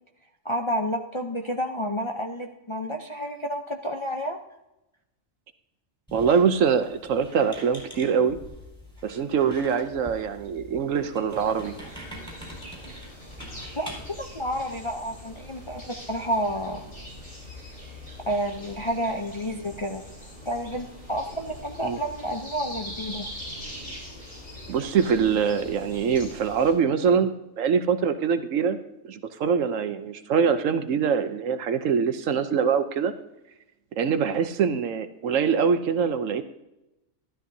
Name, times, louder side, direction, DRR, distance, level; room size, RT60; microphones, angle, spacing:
voice 1, 0.4-4.4 13.8-13.9 14.2-16.9 18.3-20.0 20.5-23.3, equal, 35° left, 2 dB, 0.5 m, -30 dB
Squeak, 6.1-14.2, equal, 5° left, 4.6 m, -45 dB
voice 2, 6.1-8.4 9.0-11.8 21.8-22.0 24.7-27.3 27.6-28.8 29.0-33.1 34.0-36.4, right 6 dB, 70° right, 10 dB, 1.1 m, -24 dB
sound 1, 11.3-26.7, left 1 dB, 65° left, 4.5 m, -42 dB
12.5 x 12.5 x 2.7 m, 0.92 s
omnidirectional pair, 1.4 m